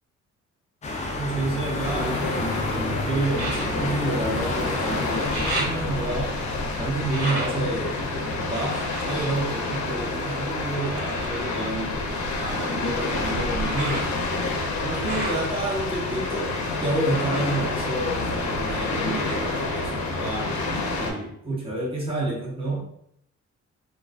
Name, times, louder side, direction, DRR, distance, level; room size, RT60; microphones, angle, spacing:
sound 1, 0.8-6.9, left 2 dB, 25° left, 0.4 m, -30 dB
voice 1, 1.2-6.4 6.8-14.1 14.8-16.5 16.8-22.9, right 1 dB, 20° right, -5 dB, 0.9 m, -29 dB
sound 2, 1.8-21.1, left 3 dB, 70° left, 0.6 m, -29 dB
sound 3, 3.4-4.8 5.1-10.3 10.9-18.7 19.1-19.9 20.4-20.5, right 1 dB, 45° right, 1.3 m, -37 dB
2.3 x 2.2 x 2.4 m, 0.73 s
cardioid pair, 90°, 30 cm